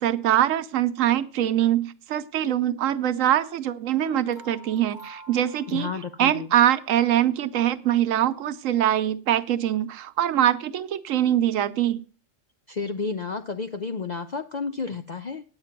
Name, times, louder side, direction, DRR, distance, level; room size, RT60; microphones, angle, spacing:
voice 1, 0.0-5.9 6.2-12.0, right 11 dB, 90° right, 12 dB, 1.1 m, -23 dB
sound 1, 4.0-6.5, right 1 dB, 30° left, 1.8 m, -48 dB
voice 2, 5.7-6.5 12.7-15.4, left 4 dB, 50° left, 7 dB, 0.5 m, -31 dB
8.8 x 8.8 x 5.8 m, 0.38 s
omnidirectional pair, 1.3 m